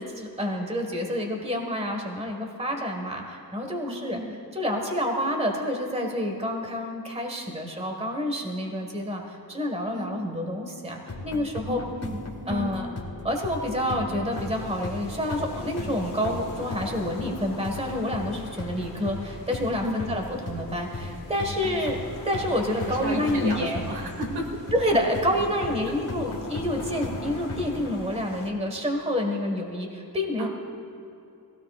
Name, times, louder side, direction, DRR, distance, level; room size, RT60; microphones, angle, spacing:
voice 1, 0.0-4.2 4.5-11.8 12.5-12.9 13.2-22.0 22.2-23.8 24.7-30.5, equal, 15° right, 2 dB, 1.6 m, -28 dB
voice 2, 3.9-4.4 9.9-10.1 11.7-12.7 19.8-20.0 22.9-24.4 25.6-25.9 30.4-30.5, right 1 dB, 80° right, 2 dB, 2.0 m, -33 dB
sound 1, 11.1-27.9, left 2 dB, 40° left, 1.8 m, -37 dB
sound 2, 14.3-28.5, left 4 dB, 60° left, 1.7 m, -42 dB
21.0 x 16.5 x 2.4 m, 2.8 s
wide cardioid pair, 145°, 38 cm